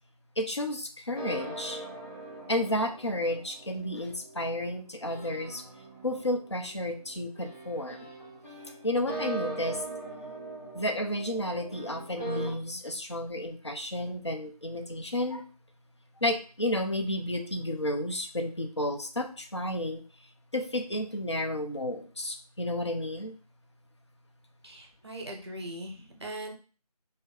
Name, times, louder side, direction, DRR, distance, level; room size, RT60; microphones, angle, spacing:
voice 1, 0.4-1.8 2.5-5.6 6.0-8.1 8.8-9.8 10.7-15.4 16.2-20.0 20.5-23.4, left 1 dB, 45° left, 4 dB, 0.4 m, -32 dB
sound 1, 1.2-12.5, right 2 dB, 20° right, 1.2 m, -41 dB
voice 2, 24.6-26.5, right 1 dB, 40° right, 2 dB, 0.7 m, -40 dB
2.7 x 2.5 x 3.2 m, 0.37 s
figure-of-eight pair, 175°, 20 cm